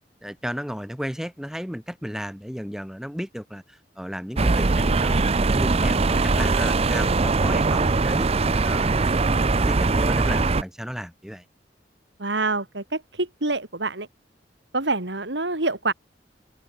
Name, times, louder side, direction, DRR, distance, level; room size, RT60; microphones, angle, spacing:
voice 1, 0.2-9.2 9.5-11.4, equal, 5° right, 5.0 m, -34 dB
sound 1, 4.4-10.6, right 3 dB, 35° right, 0.6 m, -21 dB
voice 2, 12.2-14.1 14.7-15.9, right 3 dB, 80° right, 3.7 m, -26 dB
head